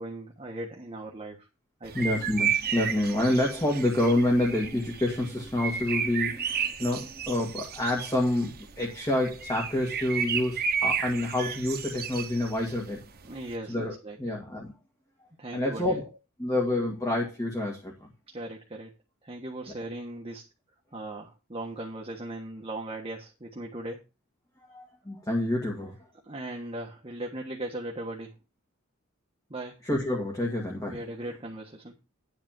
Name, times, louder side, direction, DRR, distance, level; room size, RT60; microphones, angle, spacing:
voice 1, 0.0-1.5 1.8-2.1 13.2-14.4 15.4-16.0 18.3-18.9 19.2-20.4 20.9-24.0 26.2-28.3 29.5-29.8 30.9-31.9, right 1 dB, 25° right, 1.3 m, -38 dB
sound 1, 1.8-13.5, right 7 dB, 45° right, 1.1 m, -33 dB
voice 2, 1.9-13.1 13.7-14.7 15.5-16.1 16.4-18.1 24.7-26.0 29.8-31.0, left 1 dB, 15° left, 2.0 m, -28 dB
10.5 x 4.1 x 7.5 m
head